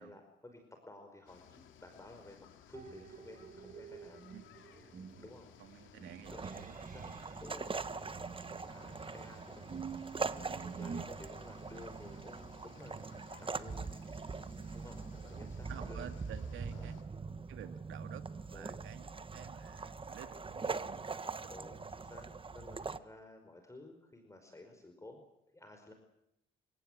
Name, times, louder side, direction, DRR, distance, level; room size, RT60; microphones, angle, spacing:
voice 1, 0.0-4.2 5.2-5.5 6.3-7.1 7.4-8.3 8.6-9.8 10.4-13.0 13.4-13.9 14.7-16.1 16.7-17.0 18.5-18.8 21.5-25.2 25.5-25.9, left 2 dB, 15° left, 5 dB, 5.2 m, -54 dB
sound 1, 1.3-17.0, left 8 dB, 75° left, 3.6 m, -60 dB
sound 2, 2.7-7.5 8.1-11.0, right 6 dB, 45° right, 2.3 m, -48 dB
voice 2, 5.6-7.4 15.3-16.9 17.5-18.2 18.5-21.5, right 11 dB, 85° right, 9 dB, 2.4 m, -52 dB
sound 3, 6.3-23.0, right 4 dB, 25° right, 1.4 m, -42 dB
29.0 x 18.0 x 9.3 m, 0.81 s
cardioid pair, 90°, 20 cm